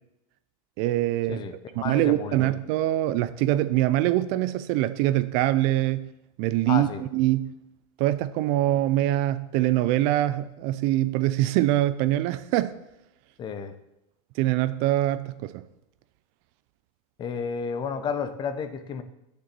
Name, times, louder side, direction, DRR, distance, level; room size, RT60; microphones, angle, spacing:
voice 1, 0.8-1.4 1.7-6.1 6.4-7.5 8.0-12.8 14.4-15.6, right 15 dB, 45° right, 0.6 m, -24 dB
voice 2, 1.3-2.5 6.7-7.0 13.4-13.7 17.2-19.0, left 6 dB, 25° left, 0.9 m, -32 dB
9.4 x 6.8 x 7.7 m
supercardioid pair, 145°, 18 cm